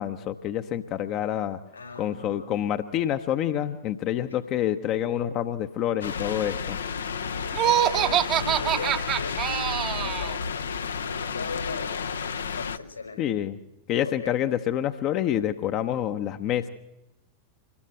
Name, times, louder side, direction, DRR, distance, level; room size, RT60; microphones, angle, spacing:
voice 1, 0.0-1.6 2.0-6.8 13.2-13.6 13.9-16.7, left 11 dB, 40° left, 8 dB, 0.9 m, -27 dB
voice 2, 1.7-2.6 4.3-4.4 7.6-13.4 14.0-14.5, left 4 dB, 85° left, 5 dB, 5.6 m, -39 dB
sound 1, 6.0-12.8, left 6 dB, 70° left, 0.8 m, -31 dB
Laughter, 7.5-10.4, right 11 dB, 35° right, 1.0 m, -25 dB
26.0 x 20.0 x 7.8 m, 0.93 s
figure-of-eight pair, 90°, 0 cm